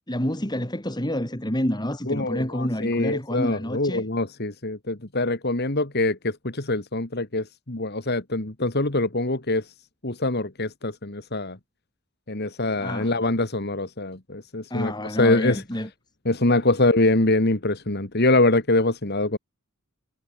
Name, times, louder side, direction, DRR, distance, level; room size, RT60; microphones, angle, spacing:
voice 1, 0.1-4.1 12.8-13.2 14.7-15.9, equal, 20° left, 4.0 m, -28 dB
voice 2, 2.1-9.7 10.0-11.6 12.3-14.9 15.2-15.6 16.3-19.4, left 2 dB, 50° left, 2.2 m, -24 dB
head